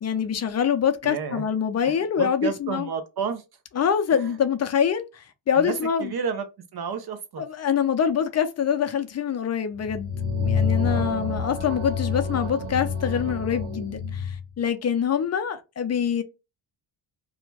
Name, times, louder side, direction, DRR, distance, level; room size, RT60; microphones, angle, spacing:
voice 1, 0.0-2.9 3.8-6.1 7.4-10.1 10.4-16.2, left 8 dB, 35° left, 0.4 m, -25 dB
voice 2, 1.0-1.4 1.9-3.4 4.1-4.4 5.6-5.7 6.0-6.5 6.7-7.4 10.9-11.3, right 6 dB, 50° right, 0.5 m, -31 dB
sound 1, 9.8-14.4, left 5 dB, 75° right, 1.4 m, -27 dB
2.5 x 2.1 x 3.1 m
cardioid pair, 105°, 50 cm